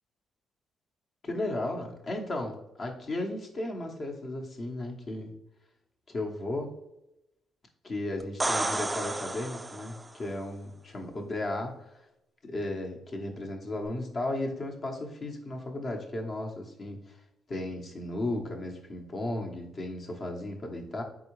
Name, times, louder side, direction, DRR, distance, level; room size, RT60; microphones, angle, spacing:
voice 1, 1.2-5.3 6.1-6.7 7.8-11.8 12.4-17.2 17.5-21.0, left 1 dB, 45° left, 1 dB, 0.9 m, -35 dB
sound 1, 8.2-10.1 13.9-14.0, right 2 dB, 15° right, 0.3 m, -31 dB
4.0 x 3.7 x 3.1 m, 0.86 s
cardioid pair, 90°, 0 cm